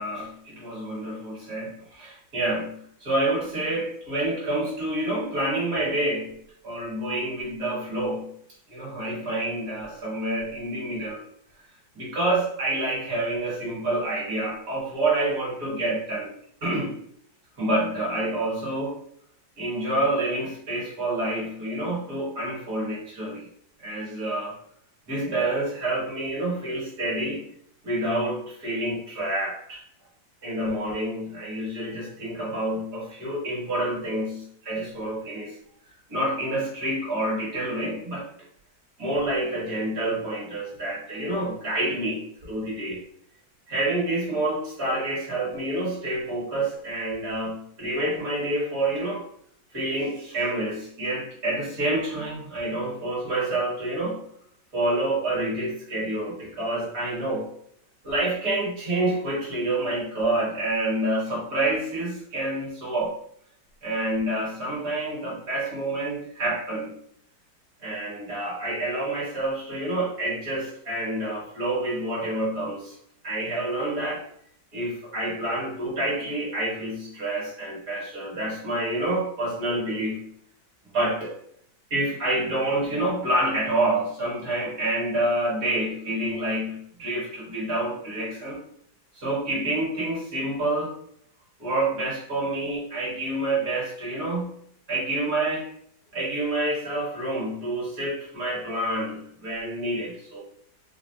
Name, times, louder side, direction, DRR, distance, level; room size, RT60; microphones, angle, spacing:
voice 1, 0.0-8.3 8.7-11.2 11.9-16.3 16.6-17.0 17.6-19.0 19.6-23.5 23.8-24.5 25.1-27.4 27.8-29.8 30.4-35.5 36.1-38.3 39.0-43.0 43.7-49.3 49.7-54.3 54.7-57.5 58.0-63.2 63.8-67.0 67.8-73.0 73.2-74.2 74.7-80.3 80.9-81.3 81.9-88.6 89.1-91.0 91.6-94.6 94.9-95.7 96.1-100.4, right 1 dB, 50° right, -5 dB, 1.7 m, -28 dB
4.2 x 2.0 x 2.7 m, 0.66 s
omnidirectional pair, 2.1 m